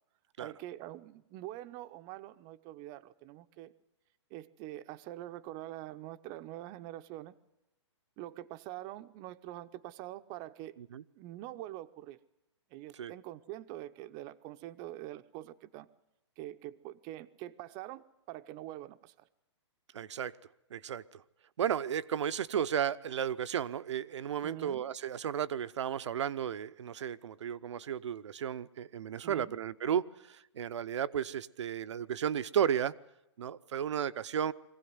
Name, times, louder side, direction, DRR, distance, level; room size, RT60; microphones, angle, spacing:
voice 1, 0.4-3.7 4.3-7.4 8.2-10.8 11.1-12.2 12.7-15.9 16.4-19.3 24.4-24.8 29.2-29.5, right 14 dB, 25° right, 12 dB, 0.7 m, -45 dB
voice 2, 19.9-20.4 20.7-21.2 21.6-32.9 33.4-34.5, right 9 dB, 70° right, 15 dB, 0.8 m, -34 dB
22.0 x 16.5 x 9.6 m, 0.90 s
hypercardioid pair, 155°, 15 cm